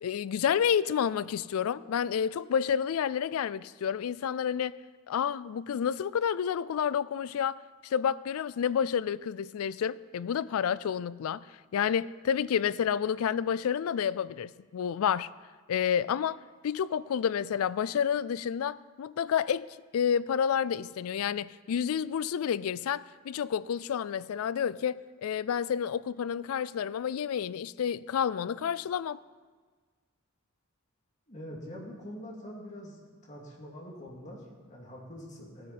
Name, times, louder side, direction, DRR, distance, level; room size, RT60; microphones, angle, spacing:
voice 1, 0.0-11.5 11.7-15.3 15.7-19.7 19.9-29.2, left 8 dB, 85° left, 0.3 m, -30 dB
voice 2, 31.3-35.7, equal, 35° left, 2.4 m, -44 dB
16.0 x 9.8 x 4.2 m
head